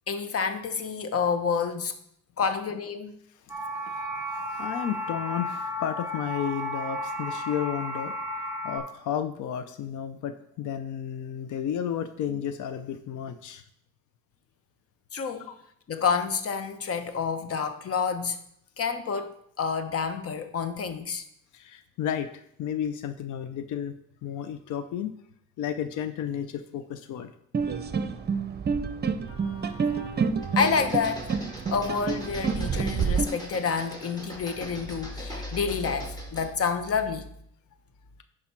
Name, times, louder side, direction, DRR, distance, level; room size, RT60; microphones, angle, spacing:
voice 1, 0.1-2.0 2.4-3.1 15.1-15.5 15.9-18.4 18.8-21.2 29.3-30.1 30.6-31.3 31.7-37.3, left 5 dB, 50° left, 1.0 m, -29 dB
voice 2, 3.5-13.6 15.5-15.6 21.5-23.9 24.2-25.2 25.6-27.3, left 9 dB, 80° left, 0.6 m, -33 dB
sound 1, 3.5-8.8, equal, 5° right, 1.9 m, -33 dB
sound 2, 27.5-33.2, right 6 dB, 35° right, 0.8 m, -28 dB
sound 3, 30.4-36.6, equal, 15° left, 2.3 m, -41 dB
10.5 x 5.0 x 4.4 m
cardioid pair, 90°, 30 cm